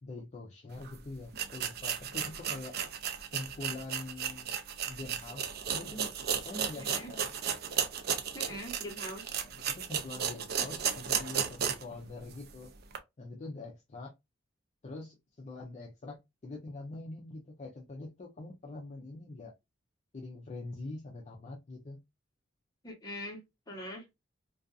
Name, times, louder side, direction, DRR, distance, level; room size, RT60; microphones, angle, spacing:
voice 1, 0.0-2.8 3.3-4.5 4.9-7.3 9.4-12.7 13.2-14.1 14.8-19.5 20.1-22.0, left 2 dB, 35° left, 0.4 m, -44 dB
sound 1, 0.8-0.9 1.3-11.9 12.3-12.4 12.9-13.0, right 7 dB, 55° right, 0.4 m, -34 dB
voice 2, 6.8-7.1 8.3-9.3 22.8-23.4 23.7-24.0, equal, 20° left, 0.9 m, -42 dB
2.4 x 2.3 x 2.4 m
head